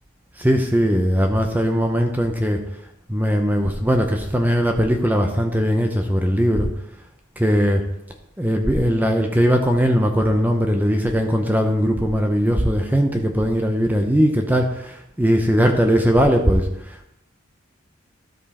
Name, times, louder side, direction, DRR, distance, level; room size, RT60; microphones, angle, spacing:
voice 1, 0.4-2.6 3.1-6.7 7.4-7.8 8.4-17.1, equal, 10° right, 4 dB, 0.7 m, -19 dB
13.0 x 5.4 x 4.2 m, 0.80 s
head